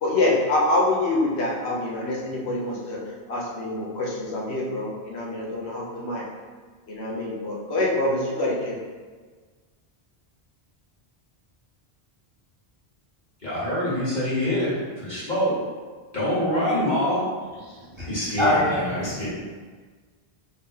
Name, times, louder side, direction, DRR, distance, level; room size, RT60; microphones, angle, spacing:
voice 1, 0.0-3.0 3.3-6.2 6.9-8.8, left 2 dB, 90° left, -4 dB, 1.1 m, -25 dB
voice 2, 13.4-15.5 16.1-17.2 18.0-19.3, left 1 dB, 45° left, -10 dB, 1.7 m, -25 dB
voice 3, 17.7-18.1 18.4-19.3, left 1 dB, 30° right, -8 dB, 1.1 m, -25 dB
4.1 x 3.4 x 2.8 m, 1.5 s
omnidirectional pair, 1.1 m